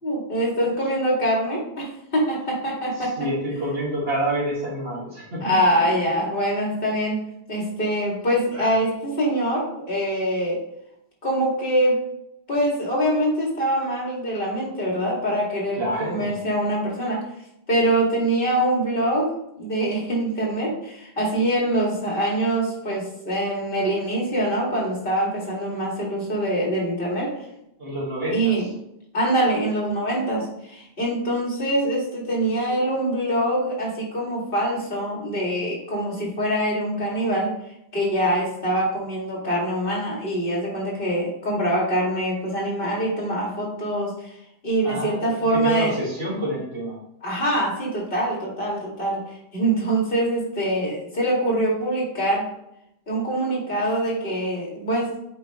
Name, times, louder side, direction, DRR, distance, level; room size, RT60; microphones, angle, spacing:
voice 1, 0.0-3.1 5.4-7.2 7.5-10.6 11.2-12.0 12.5-17.2 17.7-19.3 19.6-27.3 28.3-28.7 29.1-37.5 37.9-44.3 44.6-46.0 47.2-49.2 49.5-52.5 53.1-55.3, right 1 dB, 55° left, -3 dB, 2.4 m, -24 dB
voice 2, 3.0-5.4 8.6-8.7 15.8-16.4 27.8-28.6 44.8-47.0, right 1 dB, 65° right, -4 dB, 2.0 m, -28 dB
8.0 x 5.2 x 3.0 m, 0.80 s
omnidirectional pair, 1.1 m